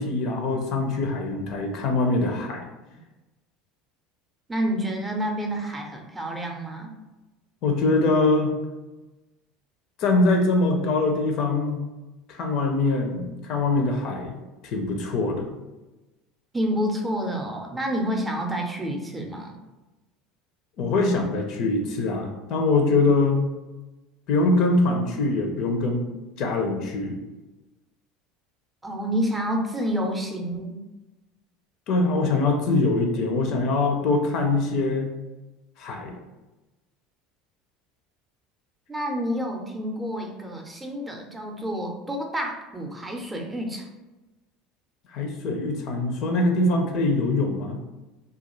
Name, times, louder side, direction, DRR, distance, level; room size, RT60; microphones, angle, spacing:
voice 1, 0.0-2.6 7.6-8.5 10.0-11.8 12.3-14.3 14.6-15.5 20.8-23.4 24.3-26.1 26.4-27.2 31.9-35.1 35.8-36.2 45.1-47.8, left 2 dB, 60° left, 3 dB, 0.5 m, -23 dB
voice 2, 4.5-6.9 16.5-19.6 28.8-30.8 38.9-43.9, equal, 15° right, 1 dB, 0.5 m, -29 dB
2.4 x 2.2 x 3.0 m, 1.1 s
supercardioid pair, 95°, 0 cm